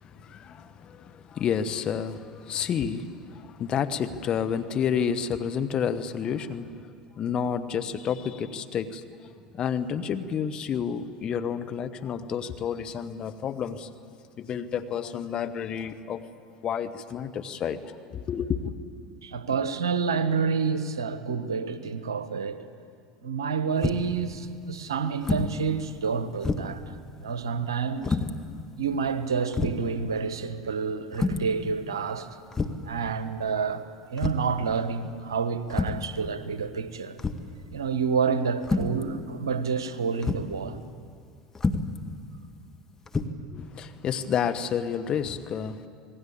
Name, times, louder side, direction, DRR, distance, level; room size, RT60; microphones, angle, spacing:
voice 1, 0.0-6.9 7.2-9.0 9.5-13.9 14.4-16.2 16.6-18.7 43.5-45.9, left 7 dB, 40° left, 1.5 m, -30 dB
voice 2, 19.2-22.6 23.2-27.0 27.2-28.2 28.8-32.4 32.8-33.8 34.1-37.2 37.7-40.8, right 5 dB, 85° right, 1.2 m, -29 dB
Piano - Dead Key - Double Long, 23.8-24.2 25.2-25.6 26.0-26.1 26.4-26.8 28.0-28.3 29.1-29.2 29.5-29.8 31.1-31.5 32.5-32.9 34.2-34.5 35.7-36.1 37.2-37.6 38.6-39.0 40.2-40.5 41.5-42.0 43.1-43.3, left 3 dB, 20° left, 1.8 m, -28 dB
27.0 x 19.5 x 8.8 m
hypercardioid pair, 75°, 2 cm